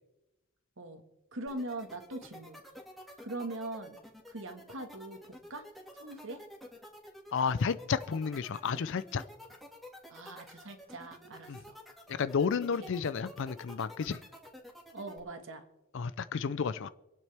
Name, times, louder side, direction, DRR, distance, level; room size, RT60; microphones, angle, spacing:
voice 1, 1.3-2.6 3.2-4.0 4.3-5.7 5.9-6.4 10.1-11.8 12.8-12.9 14.9-15.6, right 2 dB, 60° right, 7 dB, 1.6 m, -42 dB
sound 1, 1.5-15.2, equal, ahead, 1.9 m, -50 dB
voice 2, 7.3-9.2 11.5-11.6 12.1-14.2 15.9-16.9, left 6 dB, 60° left, 15 dB, 0.4 m, -31 dB
27.5 x 9.2 x 3.4 m, 1.0 s
head